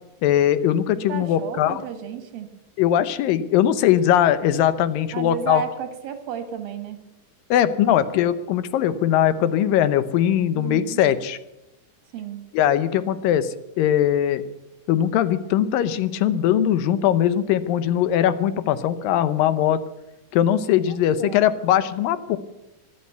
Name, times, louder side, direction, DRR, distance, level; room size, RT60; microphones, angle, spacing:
voice 1, 0.2-1.8 2.8-5.6 7.5-11.4 12.5-13.5 13.8-14.4 14.9-19.8 20.3-22.4, left 10 dB, 80° left, 14 dB, 2.5 m, -20 dB
voice 2, 1.1-2.5 5.1-7.0 10.5-11.0 12.1-12.4 20.7-21.5, right 8 dB, 90° right, 9 dB, 3.4 m, -33 dB
14.5 x 12.0 x 8.0 m, 0.94 s
omnidirectional pair, 4.0 m